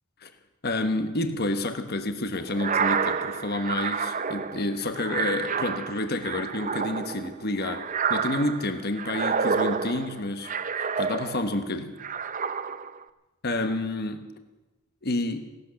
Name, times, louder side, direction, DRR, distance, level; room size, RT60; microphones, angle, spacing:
voice 1, 0.6-7.8 8.1-10.5 11.0-11.9 13.4-14.3 15.0-15.4, left 2 dB, 45° left, 8 dB, 1.2 m, -29 dB
sound 1, 2.5-11.6 12.0-13.0, right 6 dB, 35° right, 0.6 m, -29 dB
17.0 x 12.0 x 7.0 m, 1.1 s
head